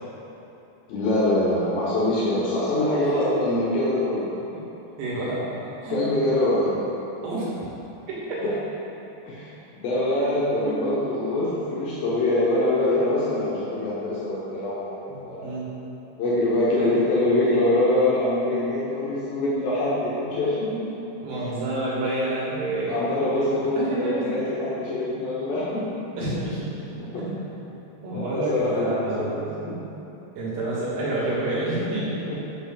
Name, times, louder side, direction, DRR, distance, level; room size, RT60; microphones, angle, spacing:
voice 1, 0.9-4.3 5.9-6.8 8.4-8.6 9.3-15.6 16.2-20.8 22.9-26.0 27.0-27.2 28.0-29.8 32.3-32.4, left 1 dB, 80° left, -8 dB, 2.0 m, -24 dB
voice 2, 2.9-3.3 5.0-5.5 5.8-6.0 7.2-7.6 8.1-8.4 10.7-10.8 15.1-15.7 16.8-16.9 21.2-23.2 23.8-24.4 26.2-27.5 28.0-29.3 30.4-32.4, right 2 dB, 90° right, -8 dB, 4.8 m, -28 dB
9.9 x 6.5 x 3.9 m, 2.9 s
omnidirectional pair, 5.9 m